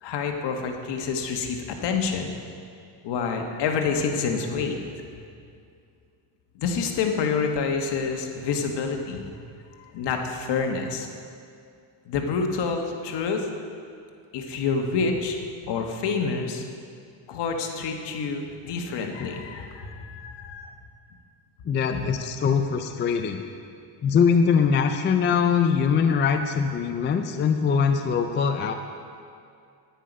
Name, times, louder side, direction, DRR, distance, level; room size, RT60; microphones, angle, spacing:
voice 1, 0.0-2.3 3.0-4.8 6.5-9.3 9.8-11.1 12.0-13.5 14.3-15.4 15.6-16.6 17.3-20.7 21.9-22.1, left 5 dB, 60° left, 3 dB, 1.4 m, -28 dB
voice 2, 21.6-23.4 24.0-28.7, left 6 dB, 25° left, 5 dB, 0.4 m, -22 dB
10.0 x 9.5 x 5.2 m, 2.4 s
cardioid pair, 140°, 46 cm